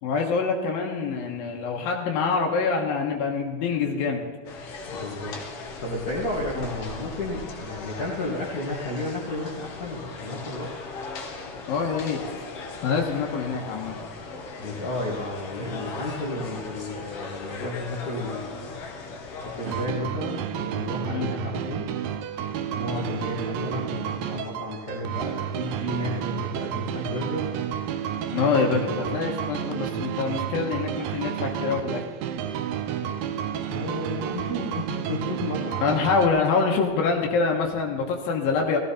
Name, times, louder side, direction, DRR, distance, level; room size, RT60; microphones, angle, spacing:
voice 1, 0.0-4.3 6.6-6.7 11.6-12.2 12.8-14.0 21.1-21.3 28.3-32.0 35.8-38.8, left 5 dB, 90° left, 0 dB, 3.1 m, -25 dB
sound 1, 4.5-19.9, left 4 dB, 55° left, 1.9 m, -38 dB
voice 2, 4.9-5.4 5.8-10.7 14.6-18.8 19.4-21.9 22.8-27.5 33.7-35.9, left 1 dB, 35° left, -4 dB, 1.8 m, -32 dB
sound 2, 19.7-36.3, right 9 dB, 85° right, 2.5 m, -31 dB
16.0 x 15.0 x 4.2 m, 1.4 s
omnidirectional pair, 4.0 m